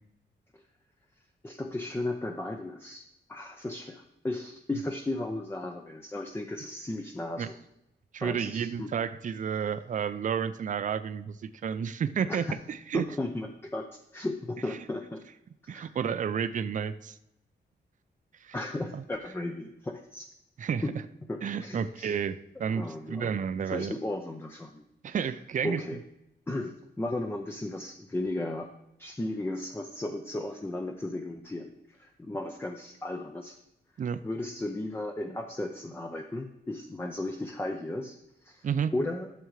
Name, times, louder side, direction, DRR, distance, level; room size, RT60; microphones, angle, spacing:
voice 1, 1.4-3.0 3.3-7.6 8.2-8.9 12.3-12.6 12.9-15.2 15.7-15.9 18.5-20.3 20.8-21.0 21.3-22.2 22.7-25.2 25.6-26.0 26.5-28.7 29.0-33.6 34.2-39.3, left 2 dB, 10° left, 5 dB, 0.5 m, -35 dB
voice 2, 8.1-13.1 15.7-17.2 18.4-18.6 18.9-19.0 20.6-20.8 21.4-23.9 25.0-25.8 34.0-34.2 38.6-38.9, right 7 dB, 45° right, 12 dB, 0.4 m, -31 dB
12.5 x 6.8 x 3.2 m, 0.87 s
wide cardioid pair, 140°, 19 cm